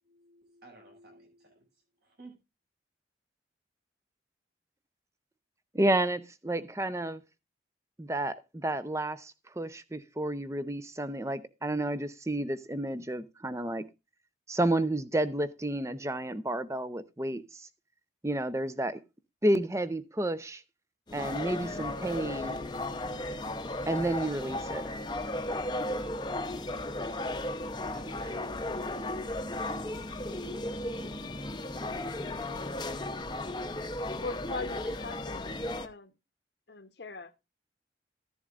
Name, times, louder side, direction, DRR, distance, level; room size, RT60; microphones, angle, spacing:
voice 1, 0.0-2.4 27.9-28.8, right 2 dB, 60° right, 6.4 m, -54 dB
voice 2, 5.7-7.2 8.0-13.8 14.5-17.7 18.2-19.0 19.4-20.6 21.1-22.6 23.9-24.8, right 1 dB, 15° right, 0.7 m, -31 dB
sound 1, 21.1-35.9, left 1 dB, 25° left, 0.8 m, -35 dB
voice 3, 34.2-36.1 36.7-37.5, left 3 dB, 65° left, 1.0 m, -41 dB
14.5 x 11.0 x 2.5 m
head